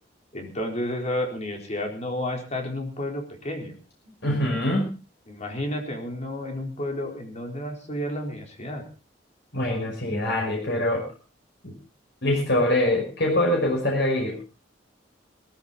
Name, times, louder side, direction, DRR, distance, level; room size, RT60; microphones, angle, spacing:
voice 1, 0.3-3.8 5.3-8.8, left 1 dB, 40° left, 2 dB, 4.3 m, -31 dB
voice 2, 4.2-4.9 9.5-11.0 11.6-11.7 12.2-14.3, left 1 dB, 65° left, 0 dB, 5.6 m, -24 dB
18.5 x 14.5 x 4.2 m, 0.34 s
head